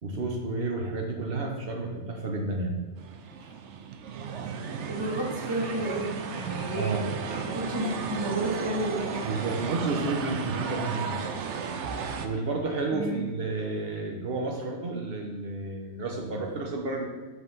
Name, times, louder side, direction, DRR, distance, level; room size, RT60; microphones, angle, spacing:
voice 1, 0.0-2.8 3.4-3.5 6.8-7.1 9.2-11.2 11.8-11.9 12.2-17.1, right 3 dB, 55° right, 2 dB, 1.1 m, -31 dB
sound 1, 3.0-12.3, right 6 dB, 80° right, 0.9 m, -34 dB
voice 2, 4.8-9.5 12.9-13.3, right 1 dB, 20° right, -2 dB, 1.2 m, -32 dB
5.6 x 4.1 x 5.4 m, 1.3 s
omnidirectional pair, 1.2 m